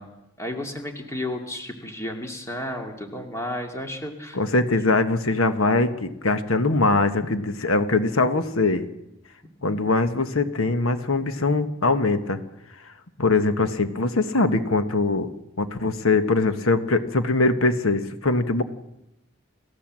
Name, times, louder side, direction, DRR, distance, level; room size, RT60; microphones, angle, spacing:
voice 1, 0.0-4.4, left 1 dB, 15° left, 3 dB, 2.4 m, -33 dB
voice 2, 4.3-8.8 9.6-12.4 12.8-12.9 13.2-15.3 15.6-18.6, left 3 dB, 80° left, 9 dB, 1.3 m, -22 dB
28.0 x 15.5 x 7.5 m, 0.89 s
head